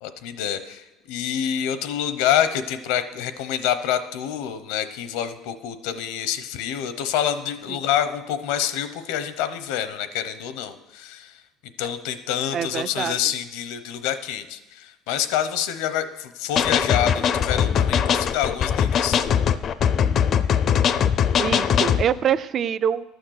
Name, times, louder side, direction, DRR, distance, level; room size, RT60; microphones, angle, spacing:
voice 1, 0.0-11.4 11.8-19.2, left 10 dB, 90° left, 11 dB, 0.8 m, -27 dB
voice 2, 12.5-13.2 21.4-23.0, right 8 dB, 35° right, 17 dB, 0.3 m, -24 dB
sound 1, 16.6-22.0, left 8 dB, 35° left, 0.4 m, -21 dB
12.0 x 6.5 x 6.5 m, 1.0 s
cardioid pair, 165°, 0 cm